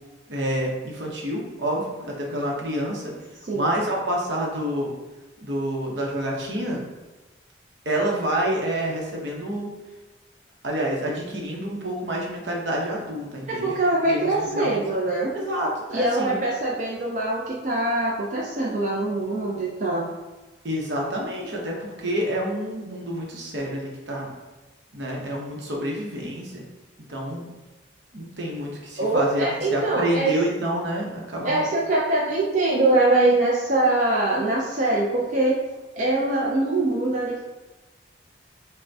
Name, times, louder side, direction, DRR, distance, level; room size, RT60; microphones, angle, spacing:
voice 1, 0.3-3.1 3.5-4.9 5.4-6.8 7.9-9.7 10.6-13.7 14.1-14.8 15.3-16.4 20.6-24.3 24.9-26.6 27.1-27.5 28.1-31.6, right 1 dB, 70° right, -2 dB, 0.8 m, -28 dB
voice 2, 3.4-3.8 13.5-15.4 15.9-20.1 29.0-30.4 31.4-35.7 36.0-37.4, right 2 dB, 40° right, -4 dB, 0.4 m, -23 dB
5.4 x 2.1 x 2.7 m, 1.1 s
head